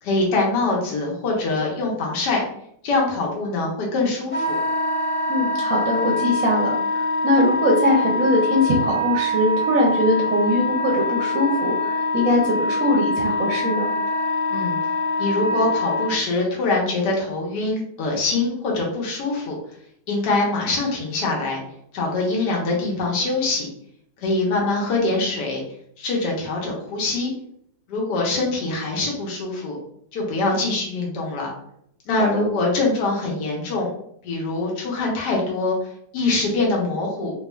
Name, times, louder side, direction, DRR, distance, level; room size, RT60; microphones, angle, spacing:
voice 1, 0.0-2.4 2.8-4.6 14.5-14.8 15.2-19.6 20.1-21.6 21.9-23.7 24.2-25.6 26.0-27.3 27.9-29.8 30.1-31.5 32.1-33.9 34.2-37.3, left 3 dB, 80° left, -3 dB, 1.4 m, -23 dB
Wind instrument woodwind instrument, 4.3-16.1, left 2 dB, 25° left, 0.8 m, -24 dB
voice 2, 5.3-13.9 32.3-32.5, left 1 dB, 65° right, -2 dB, 0.9 m, -21 dB
3.5 x 3.0 x 2.2 m, 0.70 s
omnidirectional pair, 1.8 m